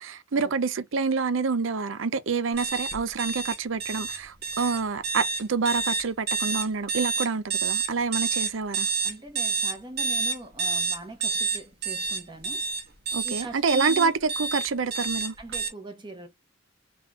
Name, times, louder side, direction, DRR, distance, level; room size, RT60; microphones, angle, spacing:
voice 1, 0.0-8.9 13.1-15.3, right 5 dB, 80° right, 0.6 m, -27 dB
sound 1, 2.6-15.7, right 4 dB, 55° right, 1.5 m, -28 dB
voice 2, 9.0-12.7 13.2-14.1 15.4-16.3, right 1 dB, 25° right, 1.3 m, -41 dB
3.9 x 3.7 x 2.8 m
head